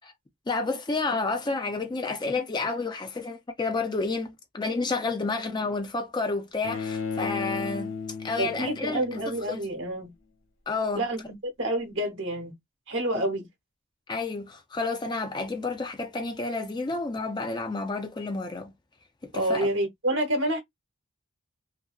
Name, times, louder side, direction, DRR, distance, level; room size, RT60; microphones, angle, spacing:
voice 1, 0.5-7.9 8.2-9.6 10.7-11.0 13.1-13.2 14.1-18.7 19.2-19.7, left 3 dB, 20° left, 0.4 m, -30 dB
Bowed string instrument, 6.6-9.7, left 5 dB, 70° left, 0.5 m, -34 dB
voice 2, 8.4-10.1 10.9-12.5 12.9-13.5 19.3-20.6, right 1 dB, 60° right, 1.0 m, -28 dB
2.7 x 2.6 x 2.3 m
head